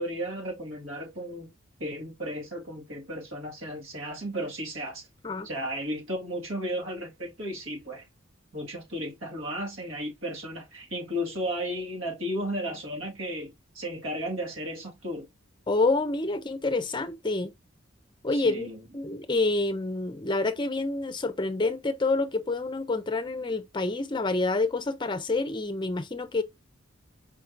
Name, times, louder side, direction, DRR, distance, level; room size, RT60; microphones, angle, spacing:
voice 1, 0.0-1.5 1.8-5.1 5.4-8.1 8.5-15.3 18.3-18.8, equal, 80° right, 2.1 m, -34 dB
voice 2, 15.7-17.5 18.2-18.7 18.9-26.4, left 3 dB, 20° left, 0.5 m, -27 dB
5.1 x 2.8 x 3.7 m
head